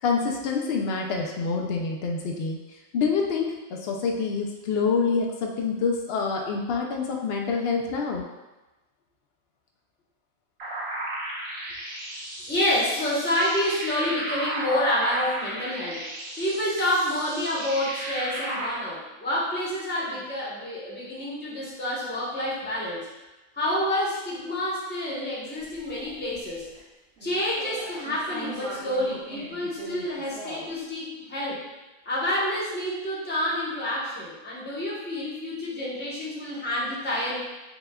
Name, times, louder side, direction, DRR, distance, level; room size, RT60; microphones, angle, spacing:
voice 1, 0.0-2.6 2.9-8.2, left 5 dB, 65° left, 1 dB, 0.6 m, -26 dB
sound 1, 10.6-18.7, right 1 dB, 85° right, 1.5 m, -34 dB
voice 2, 12.5-16.0 16.4-23.1 23.6-26.7 27.2-31.6 32.0-37.4, left 1 dB, 10° left, -7 dB, 0.7 m, -28 dB
sound 2, 25.6-26.8 27.2-30.8, right 2 dB, 70° right, 1.7 m, -40 dB
6.0 x 2.3 x 2.2 m, 1.1 s
omnidirectional pair, 1.5 m